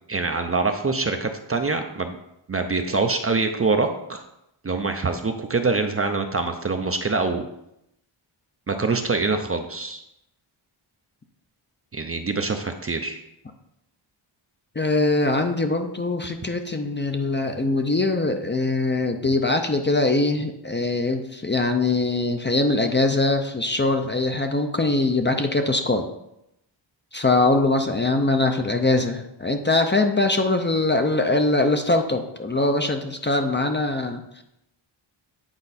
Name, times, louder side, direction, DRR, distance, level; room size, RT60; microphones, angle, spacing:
voice 1, 0.1-2.2 2.5-4.2 4.6-7.5 8.7-10.0 11.9-13.2, right 3 dB, 30° right, 5 dB, 0.5 m, -25 dB
voice 2, 14.8-26.1 27.1-34.4, left 2 dB, 25° left, 5 dB, 0.5 m, -22 dB
8.8 x 4.6 x 4.1 m, 0.82 s
wide cardioid pair, 130°, 49 cm